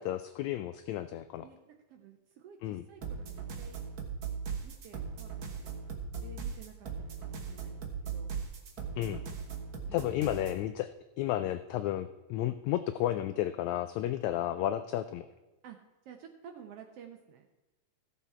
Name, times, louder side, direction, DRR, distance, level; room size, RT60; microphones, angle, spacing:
voice 1, 0.0-1.5 2.6-2.8 9.0-9.2 9.9-10.9 11.2-15.3, left 13 dB, 85° left, 11 dB, 1.6 m, -32 dB
voice 2, 1.4-3.8 4.6-8.4 9.9-10.3 15.6-17.5, right 8 dB, 75° right, 4 dB, 1.4 m, -53 dB
sound 1, 3.0-10.6, right 6 dB, 55° right, 1.0 m, -39 dB
15.5 x 7.2 x 4.3 m, 1.1 s
omnidirectional pair, 3.7 m